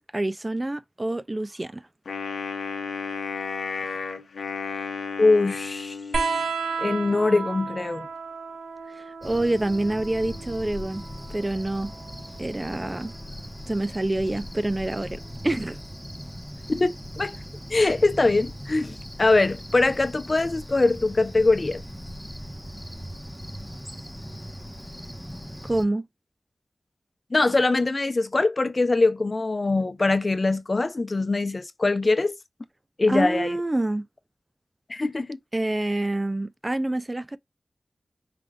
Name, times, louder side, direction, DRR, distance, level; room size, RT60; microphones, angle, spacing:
voice 1, 0.0-1.8 9.2-11.0 11.3-11.9 12.4-13.1 13.7-15.2 15.4-15.8 25.7-26.1 33.1-34.0 35.5-37.4, right 1 dB, 30° right, 0.5 m, -27 dB
Wind instrument woodwind instrument, 2.0-6.5, left 5 dB, 90° left, 0.8 m, -33 dB
voice 2, 5.2-6.0 6.8-8.1 16.7-16.9 17.2-17.3 17.7-21.8 27.3-32.3 33.0-33.6 34.9-35.4, left 3 dB, 50° left, 0.7 m, -22 dB
sound 1, 6.1-13.2 14.6-15.4 16.7-16.8, right 4 dB, 85° right, 1.2 m, -34 dB
Cricket, 9.2-25.8, equal, ahead, 1.2 m, -39 dB
5.1 x 3.4 x 2.5 m
cardioid pair, 45°, 0 cm